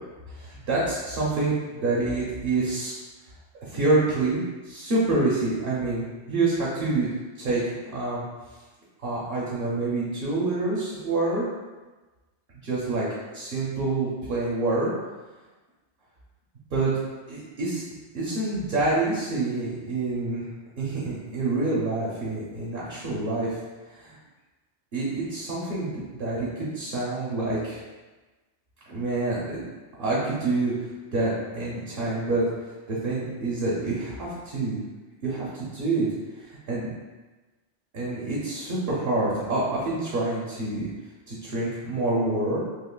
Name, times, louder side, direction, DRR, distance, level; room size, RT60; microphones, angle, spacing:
voice 1, 0.3-3.0 3.6-7.1 7.3-8.2 9.0-11.5 12.6-13.1 13.3-14.9 16.7-16.9 17.3-17.8 18.1-20.4 20.8-23.6 23.9-24.2 24.9-27.8 28.9-29.6 30.0-32.4 32.9-34.8 35.2-36.1 36.3-36.9 37.9-40.9 41.3-42.6, right 2 dB, 55° right, -6 dB, 0.9 m, -27 dB
3.7 x 2.9 x 2.3 m, 1.2 s
omnidirectional pair, 1.2 m